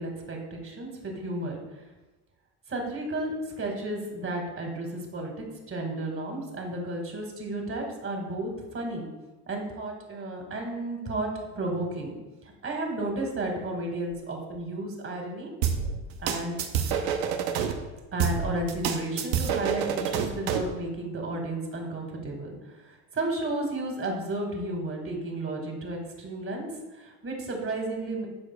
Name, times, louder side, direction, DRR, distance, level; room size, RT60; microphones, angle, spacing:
voice 1, 0.0-1.6 2.7-5.3 5.7-9.1 9.5-12.2 12.4-15.5 16.2-16.6 18.1-22.6 22.8-26.7 26.9-28.3, right 2 dB, 30° right, 1 dB, 2.1 m, -33 dB
sound 1, 15.6-17.7 18.2-20.7, right 7 dB, 85° right, 0.8 m, -27 dB
12.5 x 4.9 x 2.3 m, 1.1 s
supercardioid pair, 85°, 41 cm